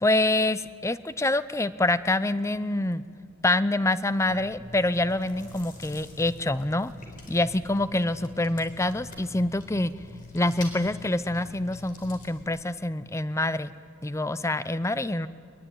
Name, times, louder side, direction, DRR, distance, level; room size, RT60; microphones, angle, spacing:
voice 1, 0.0-3.0 3.4-6.9 7.3-9.9 10.3-13.7 14.0-15.3, left 2 dB, 15° left, 14 dB, 0.6 m, -26 dB
Chewing mastication, 4.3-12.4, left 2 dB, 45° left, 4.3 m, -45 dB
23.0 x 21.5 x 8.9 m, 2.3 s
head